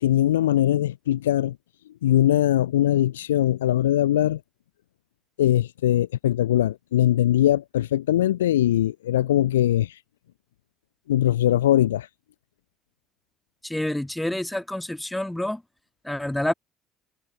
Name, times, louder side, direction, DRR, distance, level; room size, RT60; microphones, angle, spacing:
voice 1, 0.0-1.6 2.0-4.4 5.4-10.0 11.1-12.1, left 12 dB, 75° left, 0.4 m, -21 dB
voice 2, 13.6-15.6 16.0-16.5, left 1 dB, 5° left, 2.0 m, -28 dB
figure-of-eight pair, 55°, 0 cm